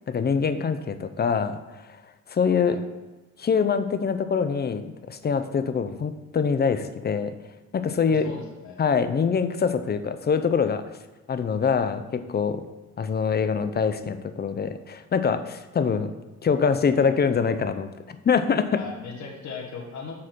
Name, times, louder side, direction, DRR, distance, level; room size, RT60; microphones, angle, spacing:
voice 1, 0.1-1.8 2.3-2.9 3.4-7.4 7.7-8.4 8.8-10.9 11.3-12.7 13.0-16.2 16.4-18.7, left 6 dB, 35° left, 10 dB, 0.6 m, -24 dB
voice 2, 8.1-8.8 18.7-20.1, left 5 dB, 70° left, 0 dB, 1.6 m, -38 dB
7.5 x 4.2 x 6.0 m, 1.1 s
cardioid pair, 90°, 30 cm